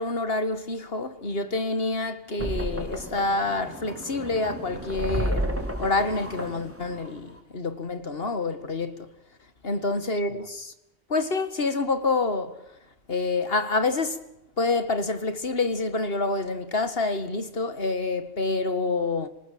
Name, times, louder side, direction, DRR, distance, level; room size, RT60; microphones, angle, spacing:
voice 1, 0.0-5.5 5.8-9.1 9.6-10.7 11.1-12.6 13.1-14.2 14.6-19.3, left 3 dB, 60° left, 2.2 m, -27 dB
sound 1, 2.4-7.4, equal, 10° right, 3.5 m, -32 dB
26.5 x 19.0 x 7.6 m
omnidirectional pair, 1.1 m